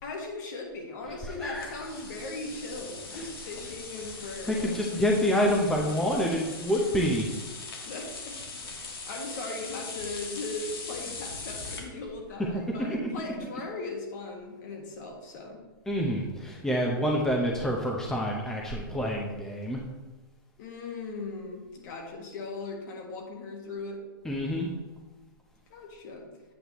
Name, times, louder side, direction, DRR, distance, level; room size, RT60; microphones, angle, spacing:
voice 1, 0.0-4.8 7.9-8.4 8.7-15.7 20.6-24.0 25.7-26.3, left 3 dB, 55° left, 2 dB, 1.8 m, -38 dB
sound 1, 1.5-11.8, left 3 dB, 80° left, 1.8 m, -41 dB
voice 2, 4.5-7.3 12.9-13.0 15.9-19.8 24.2-24.7, equal, 5° left, -2 dB, 0.8 m, -27 dB
8.3 x 6.6 x 3.1 m, 1.2 s
hypercardioid pair, 135°, 12 cm